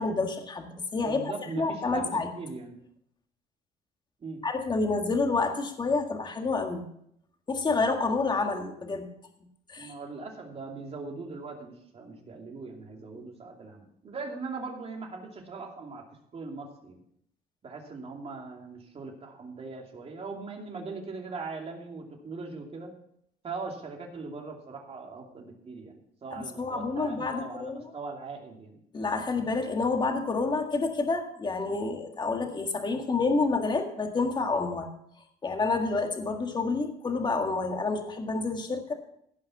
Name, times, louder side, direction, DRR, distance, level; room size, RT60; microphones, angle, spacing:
voice 1, 0.0-2.3 4.4-6.8 7.5-9.1 9.7-9.9 26.3-27.9 28.9-34.9 35.4-38.9, left 3 dB, 25° left, 4 dB, 1.7 m, -29 dB
voice 2, 1.0-2.8 4.2-4.4 9.8-16.1 16.3-17.0 17.6-22.9 23.4-28.8, right 3 dB, 35° right, 1 dB, 2.6 m, -40 dB
16.0 x 5.6 x 6.0 m, 0.73 s
cardioid pair, 110°, 17 cm